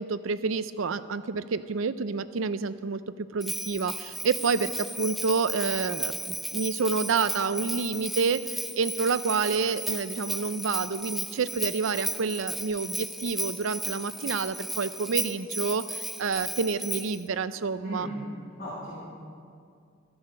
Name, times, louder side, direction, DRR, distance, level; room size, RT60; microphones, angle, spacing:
voice 1, 0.0-18.1, right 4 dB, 90° right, 14 dB, 0.5 m, -28 dB
Bell, 3.4-17.2, equal, ahead, 0.4 m, -35 dB
voice 2, 17.8-18.2 18.6-19.1, right 1 dB, 45° left, -8 dB, 3.5 m, -36 dB
14.5 x 10.0 x 6.6 m, 2.3 s
head